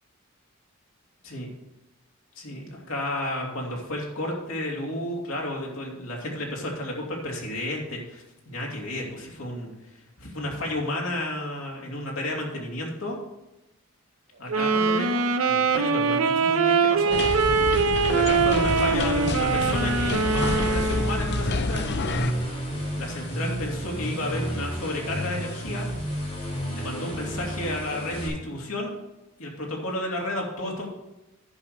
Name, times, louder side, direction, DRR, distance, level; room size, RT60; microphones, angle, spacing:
voice 1, 2.4-9.7 10.2-13.2 14.4-17.2 18.1-21.9 23.0-25.9 26.7-29.0 29.4-30.9, left 1 dB, 70° left, -2 dB, 2.7 m, -32 dB
Wind instrument woodwind instrument, 14.5-21.3, right 5 dB, 80° right, 0.7 m, -23 dB
sound 1, 17.1-22.3, left 3 dB, 55° left, 0.6 m, -28 dB
sound 2, 18.9-28.3, equal, 35° left, 4.4 m, -32 dB
11.0 x 5.1 x 6.7 m, 0.95 s
head